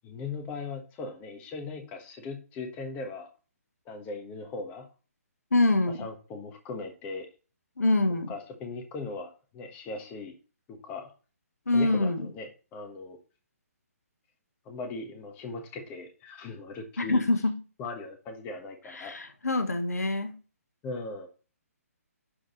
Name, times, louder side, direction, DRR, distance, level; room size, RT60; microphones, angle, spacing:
voice 1, 0.0-3.3 3.8-4.9 5.9-7.3 8.3-10.3 10.7-11.1 11.7-13.2 14.6-17.2 17.8-19.2 20.8-21.3, left 3 dB, 20° left, 1.3 m, -39 dB
voice 2, 5.5-6.0 7.8-8.3 11.7-12.2 17.0-17.5 19.0-20.3, left 2 dB, 80° left, 1.3 m, -25 dB
11.0 x 3.9 x 3.0 m
figure-of-eight pair, 140°, 8 cm